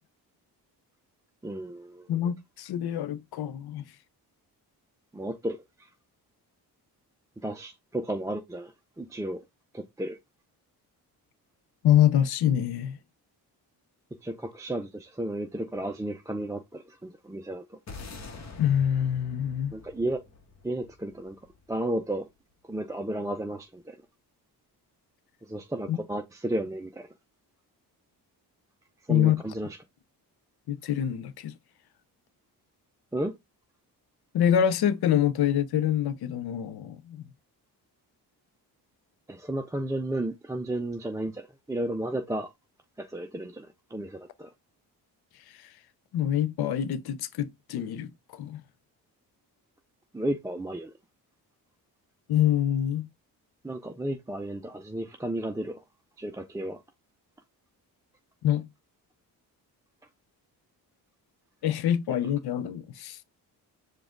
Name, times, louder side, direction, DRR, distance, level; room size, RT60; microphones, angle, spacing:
voice 1, 1.4-2.1 5.1-5.9 7.4-8.7 9.0-9.4 9.7-10.2 14.2-17.8 19.7-20.2 20.6-21.4 21.7-22.3 22.7-24.0 25.4-27.1 29.1-29.8 33.1-33.3 39.3-42.5 43.0-44.5 50.1-50.9 53.6-55.8 56.2-56.8, right 1 dB, 10° right, 0.4 m, -33 dB
voice 2, 2.1-3.8 11.8-13.0 18.6-19.7 25.9-26.0 29.1-29.4 30.7-31.5 34.3-37.2 45.6-45.7 46.1-48.6 52.3-53.1 58.4-58.7 61.6-63.2, left 10 dB, 65° left, 0.6 m, -25 dB
sound 1, 17.9-22.3, left 4 dB, 40° left, 1.1 m, -46 dB
4.9 x 2.4 x 3.6 m
cardioid pair, 75°, 41 cm